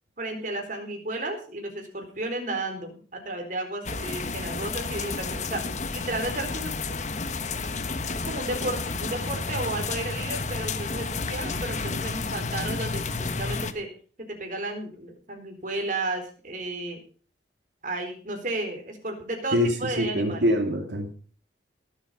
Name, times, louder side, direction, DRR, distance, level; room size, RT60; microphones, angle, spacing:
voice 1, 0.2-5.6 5.9-7.0 7.6-7.7 8.2-13.9 14.4-17.0 17.8-20.6, right 2 dB, 45° right, 3 dB, 4.3 m, -33 dB
sound 1, 3.8-13.7, left 4 dB, 45° left, 1.2 m, -31 dB
voice 2, 19.5-21.1, equal, 90° right, 4 dB, 2.5 m, -25 dB
19.5 x 8.2 x 5.5 m, 0.41 s
head